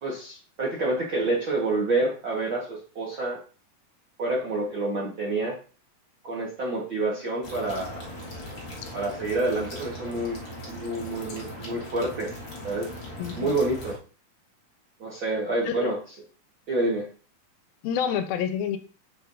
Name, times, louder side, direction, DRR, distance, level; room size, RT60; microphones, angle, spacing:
voice 1, 0.0-3.4 4.2-5.5 6.2-8.0 8.9-10.4 10.7-12.3 12.6-12.9 13.4-13.9 15.0-16.0 16.7-17.1, right 2 dB, 60° right, -4 dB, 1.2 m, -28 dB
sound 1, 7.4-14.0, left 1 dB, 55° left, 1.4 m, -39 dB
voice 2, 13.2-13.5 15.6-15.9 17.8-18.8, left 8 dB, 90° left, 9 dB, 2.5 m, -28 dB
7.9 x 6.3 x 2.6 m, 0.37 s
omnidirectional pair, 4.2 m